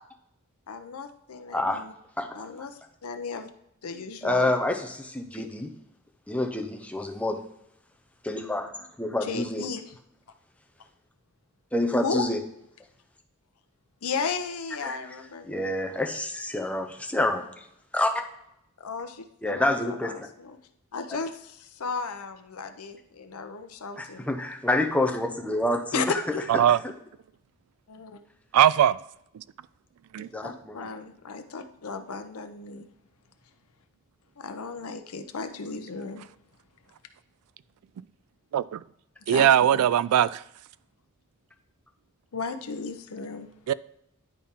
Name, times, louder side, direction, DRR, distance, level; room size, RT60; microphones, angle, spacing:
voice 1, 0.7-1.9 2.3-3.5 3.8-4.5 5.3-5.5 9.2-10.0 12.0-12.3 14.0-15.7 18.8-20.6 20.9-24.3 25.9-26.7 27.9-28.2 30.2-32.9 34.4-36.2 39.3-39.9 42.3-43.5, left 4 dB, 90° left, 0.7 m, -35 dB
voice 2, 1.5-1.8 2.2-2.3 4.2-5.7 6.3-7.4 8.2-9.6 11.7-12.4 14.8-15.0 15.4-17.5 17.9-18.1 19.4-20.3 24.0-26.2 26.5-26.9 30.3-30.7, left 1 dB, 5° left, 0.7 m, -27 dB
voice 3, 28.5-29.0 29.3-29.4 30.1-30.3 38.5-38.8 39.3-40.4 43.7-43.8, right 10 dB, 85° right, 0.3 m, -20 dB
10.5 x 4.2 x 3.6 m
head